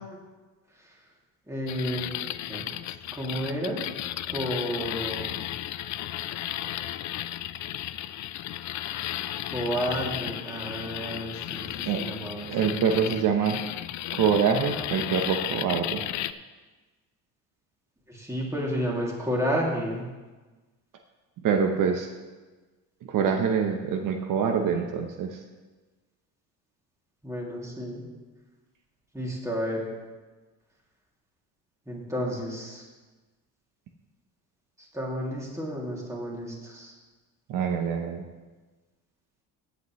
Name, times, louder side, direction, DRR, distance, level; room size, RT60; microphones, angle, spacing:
voice 1, 1.5-2.1 2.4-2.7 3.1-3.8 4.3-5.3 9.5-12.8 18.1-20.0 27.2-28.0 29.1-29.9 31.9-32.8 34.8-36.9, equal, 10° right, -3 dB, 2.6 m, -31 dB
sound 1, 1.7-16.3, left 13 dB, 55° left, 0.5 m, -34 dB
voice 2, 12.5-13.6 14.1-16.0 21.4-22.1 23.1-25.4 37.5-38.2, right 7 dB, 60° right, 4 dB, 0.9 m, -25 dB
16.0 x 8.3 x 3.1 m, 1.3 s
cardioid pair, 120°, 36 cm